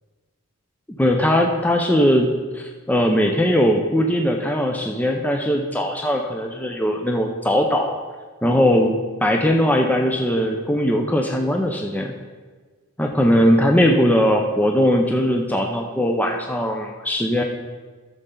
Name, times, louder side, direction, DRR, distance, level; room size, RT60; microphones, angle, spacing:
voice 1, 1.0-8.0 8.4-12.1 13.0-17.4, equal, 5° left, 2 dB, 0.5 m, -20 dB
13.0 x 6.7 x 3.8 m, 1.4 s
head